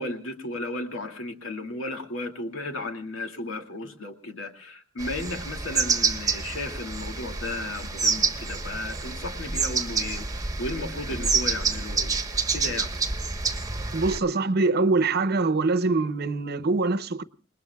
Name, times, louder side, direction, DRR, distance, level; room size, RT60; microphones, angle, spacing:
voice 1, 0.0-12.1 12.5-12.9, left 2 dB, 80° left, 2.4 m, -34 dB
sound 1, 5.0-14.2, right 4 dB, 15° right, 1.2 m, -28 dB
voice 2, 13.9-17.2, right 3 dB, 50° right, 0.8 m, -24 dB
28.5 x 20.5 x 2.3 m
head